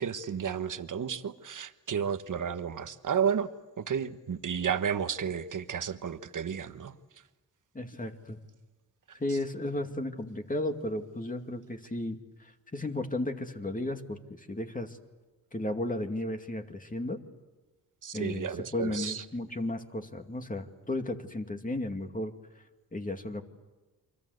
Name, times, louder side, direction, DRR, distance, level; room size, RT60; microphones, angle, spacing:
voice 1, 0.0-3.5 3.8-6.9 18.0-19.2, right 7 dB, 55° right, 1.4 m, -32 dB
voice 2, 7.7-8.4 9.2-15.0 15.5-17.2 18.1-22.3 22.9-23.4, left 1 dB, 20° left, 2.4 m, -34 dB
29.0 x 24.0 x 8.1 m
cardioid pair, 75°, 36 cm